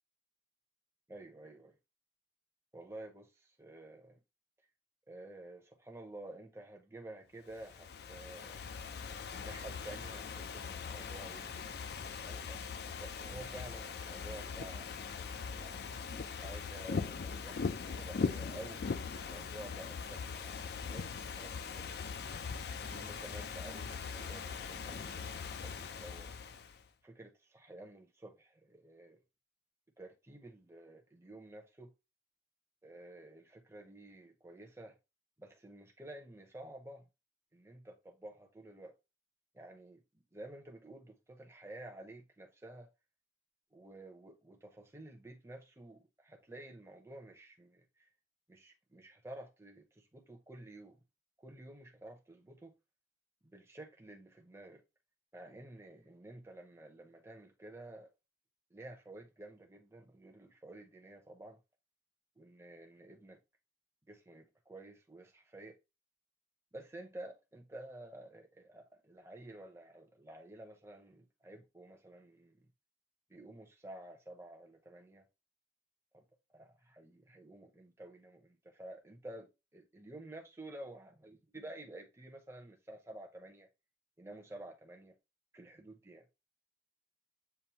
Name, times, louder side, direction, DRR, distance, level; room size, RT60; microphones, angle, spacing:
voice 1, 1.1-1.8 2.7-4.2 5.1-8.8 9.3-12.6 13.0-14.9 15.6-18.8 19.1-22.1 22.9-26.3 27.0-29.2 30.0-31.9 32.8-35.0 35.4-37.1 37.5-38.9 39.5-42.9 43.7-48.1 48.5-51.0 51.4-52.7 53.4-54.8 55.3-58.1 58.7-61.6 62.4-63.4 64.1-65.8 66.7-72.7 73.3-75.2 76.1-76.2 76.5-83.7 84.2-85.1 85.5-86.2, right 1 dB, 15° right, 0.7 m, -51 dB
Ocean / Fireworks, 7.5-26.8, left 5 dB, 60° left, 0.4 m, -41 dB
6.9 x 2.6 x 2.8 m
head